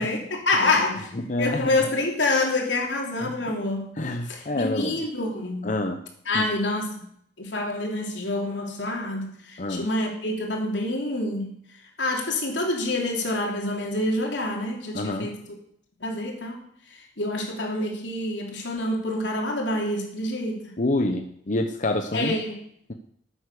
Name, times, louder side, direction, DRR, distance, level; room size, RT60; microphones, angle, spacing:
voice 1, 0.0-3.9 4.2-5.7 6.2-6.9 7.4-11.5 12.0-15.4 16.0-16.6 16.9-20.7 22.1-22.6, left 2 dB, 85° left, 1 dB, 3.2 m, -27 dB
voice 2, 1.3-1.7 3.2-3.3 4.0-5.0 5.6-6.0 6.3-6.4 9.6-9.9 14.9-15.3 20.8-22.4, left 1 dB, 45° left, 6 dB, 0.9 m, -27 dB
13.0 x 8.7 x 6.7 m, 0.68 s
head